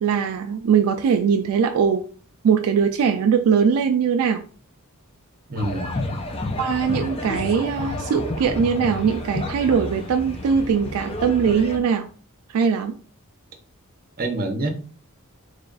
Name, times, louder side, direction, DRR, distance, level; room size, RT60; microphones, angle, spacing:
voice 1, 0.0-2.0 2.4-4.4 6.6-12.1 12.5-13.0, right 6 dB, 75° right, 0.3 m, -21 dB
voice 2, 5.5-6.0 14.2-14.7, right 2 dB, 45° right, 0.8 m, -26 dB
sound 1, 5.6-11.8, left 2 dB, 25° left, 0.5 m, -30 dB
3.3 x 2.3 x 3.8 m
head